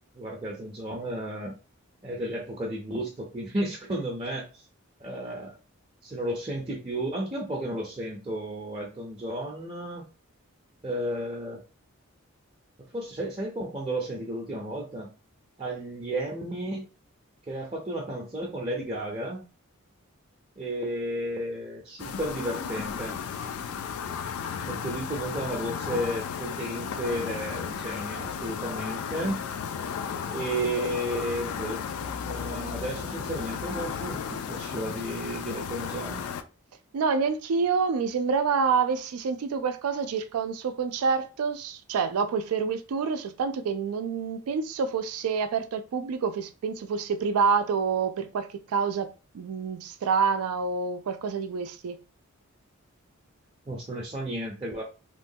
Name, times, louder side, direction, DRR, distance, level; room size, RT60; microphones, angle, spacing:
voice 1, 0.1-1.5 2.0-4.6 5.0-5.5 6.0-10.0 10.8-11.6 12.9-15.1 15.6-16.9 17.5-19.4 20.6-23.2 24.7-29.4 30.3-31.8 32.2-36.2 53.7-54.8, right 1 dB, 25° right, 0.5 m, -33 dB
sound 1, 22.0-36.4, left 7 dB, 75° left, 0.3 m, -34 dB
voice 2, 36.9-52.0, right 5 dB, 85° right, 0.4 m, -27 dB
3.0 x 2.2 x 2.6 m
head